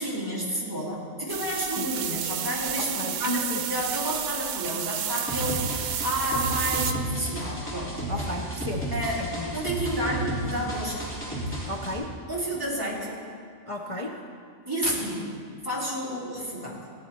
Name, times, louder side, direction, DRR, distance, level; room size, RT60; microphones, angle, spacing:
voice 1, 0.0-8.0 8.9-9.2 9.5-11.1 11.5-11.6 12.3-13.2 14.6-15.3 15.6-16.8, equal, 15° right, -6 dB, 2.8 m, -30 dB
sound 1, 1.3-6.9, right 9 dB, 85° right, 1.0 m, -31 dB
voice 2, 2.8-3.6 5.5-5.6 8.1-8.9 9.2-9.6 11.7-12.2 13.7-14.2, left 1 dB, 35° left, 0 dB, 0.6 m, -33 dB
sound 2, 5.3-11.9, right 1 dB, 10° left, 2.7 m, -32 dB
15.5 x 9.8 x 4.5 m, 2.1 s
omnidirectional pair, 1.3 m